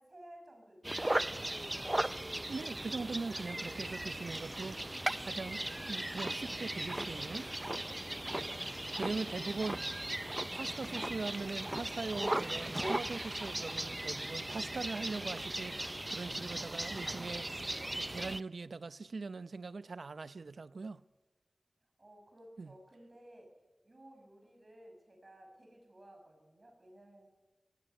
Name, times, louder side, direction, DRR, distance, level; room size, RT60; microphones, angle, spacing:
voice 1, 0.0-1.6 22.0-23.5 23.8-27.3, right 1 dB, 45° right, 6.1 m, -56 dB
sound 1, 0.8-18.4, right 1 dB, 20° right, 0.6 m, -37 dB
voice 2, 2.5-7.5 8.7-10.2 10.5-21.0 22.6-22.7, right 4 dB, 85° right, 0.7 m, -41 dB
18.0 x 17.5 x 9.0 m
wide cardioid pair, 75°, 0 cm